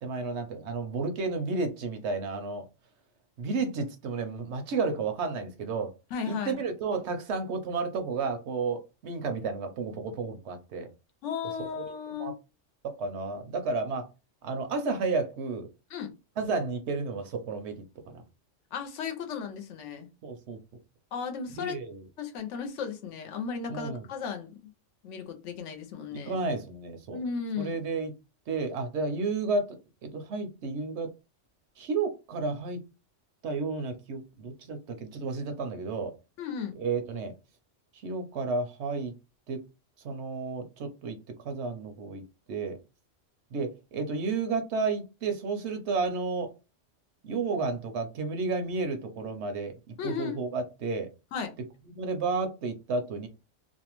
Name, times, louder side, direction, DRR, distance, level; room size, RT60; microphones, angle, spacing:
voice 1, 0.0-2.7 3.4-5.9 6.3-10.9 11.8-11.9 12.2-12.3 12.8-14.1 14.4-15.7 16.4-18.2 20.2-20.6 21.6-22.0 23.7-24.1 26.1-27.2 27.6-28.1 28.5-31.1 31.8-32.8 33.4-36.1 36.8-37.3 38.0-39.1 39.5-39.6 40.0-42.8 43.5-46.5 47.2-49.7 50.0-51.1 51.9-53.3, right 4 dB, 70° right, 0.8 m, -32 dB
voice 2, 6.1-6.5 11.2-12.3 15.9-16.1 18.7-20.1 21.1-21.8 22.2-24.7 25.0-26.4 27.1-27.8 36.4-36.7 50.0-50.3 51.3-51.5, left 6 dB, 75° left, 0.9 m, -35 dB
2.6 x 2.1 x 2.9 m
omnidirectional pair, 1.3 m